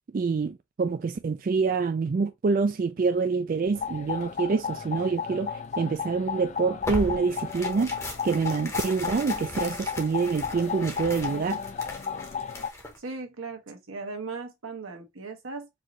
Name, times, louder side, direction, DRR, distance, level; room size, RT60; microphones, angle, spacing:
voice 1, 0.1-8.0 8.2-11.6, right 4 dB, 45° right, 0.3 m, -26 dB
sound 1, 3.7-12.7, left 6 dB, 35° left, 0.3 m, -34 dB
Tearing, 6.8-13.0, left 1 dB, 15° left, 0.8 m, -38 dB
voice 2, 13.0-15.7, right 4 dB, 85° right, 1.1 m, -38 dB
4.5 x 2.6 x 2.9 m
head